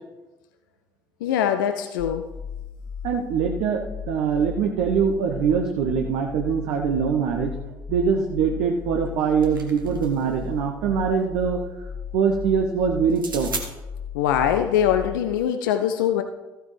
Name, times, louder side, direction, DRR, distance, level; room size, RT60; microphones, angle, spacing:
voice 1, 1.2-2.3 14.1-16.2, left 9 dB, 70° left, 7 dB, 0.5 m, -22 dB
sound 1, 2.0-15.3, left 7 dB, 10° left, 0.6 m, -36 dB
voice 2, 3.0-7.6 7.9-11.6 12.1-13.5, right 6 dB, 60° right, 3 dB, 0.8 m, -23 dB
sound 2, 9.1-10.4 13.1-13.7, right 4 dB, 85° right, 1.1 m, -35 dB
14.5 x 9.0 x 3.3 m, 1.1 s
figure-of-eight pair, 50°, 11 cm